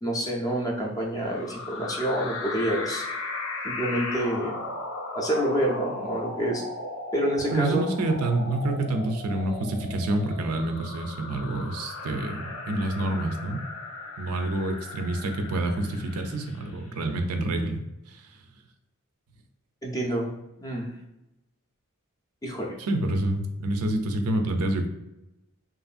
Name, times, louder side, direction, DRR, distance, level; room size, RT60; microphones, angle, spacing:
voice 1, 0.0-3.1 3.6-4.6 5.1-6.6 7.1-7.8 19.8-20.3 20.6-20.9 22.4-22.8, right 1 dB, 15° left, -1 dB, 0.4 m, -27 dB
sound 1, 1.2-16.9, left 2 dB, 75° left, 0.5 m, -37 dB
voice 2, 7.5-13.6 14.2-17.8 18.1-18.2 22.8-24.9, right 2 dB, 80° right, 5 dB, 0.4 m, -27 dB
2.8 x 2.5 x 2.4 m, 0.93 s
head